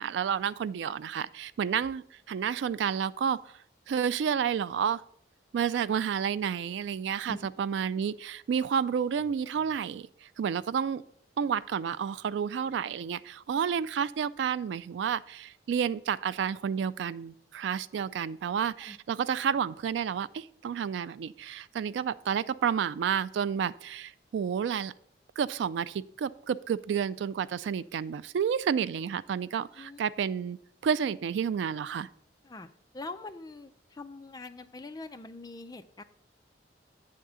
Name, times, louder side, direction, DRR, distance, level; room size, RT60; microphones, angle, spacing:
voice 1, 0.0-3.4 3.9-5.0 5.5-11.0 11.4-24.9 25.4-30.6 30.8-32.1, right 7 dB, 70° right, 17 dB, 0.3 m, -30 dB
voice 2, 32.9-36.0, left 2 dB, 20° left, 9 dB, 0.4 m, -43 dB
8.7 x 3.7 x 6.7 m, 0.68 s
head